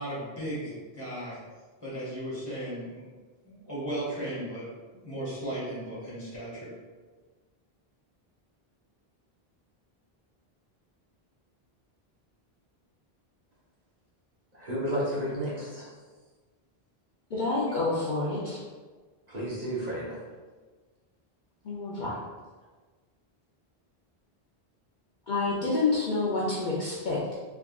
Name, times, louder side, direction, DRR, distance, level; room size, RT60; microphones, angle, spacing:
voice 1, 0.0-1.4 1.8-3.0 3.4-4.6 4.9-6.7, right 1 dB, 30° left, -8 dB, 1.6 m, -36 dB
voice 2, 14.5-15.9 19.3-20.2, equal, 45° right, -8 dB, 1.0 m, -32 dB
voice 3, 17.3-18.6 21.6-22.2 25.3-27.3, left 3 dB, 55° left, -6 dB, 0.7 m, -28 dB
3.5 x 3.5 x 2.3 m, 1.4 s
omnidirectional pair, 1.0 m